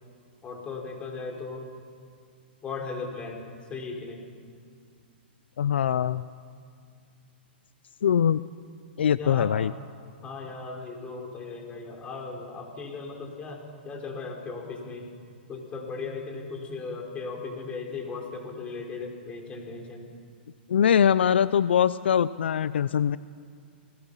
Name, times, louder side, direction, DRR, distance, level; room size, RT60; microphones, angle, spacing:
voice 1, 0.4-1.7 2.6-3.4 3.7-4.2 9.2-9.5 10.2-15.1 15.5-20.1, left 4 dB, 20° left, 1 dB, 4.7 m, -37 dB
voice 2, 5.6-6.2 8.0-8.4 9.0-9.7 20.7-23.2, left 8 dB, 80° left, 16 dB, 0.6 m, -22 dB
29.5 x 19.5 x 5.7 m, 2.3 s
hypercardioid pair, 135°, 6 cm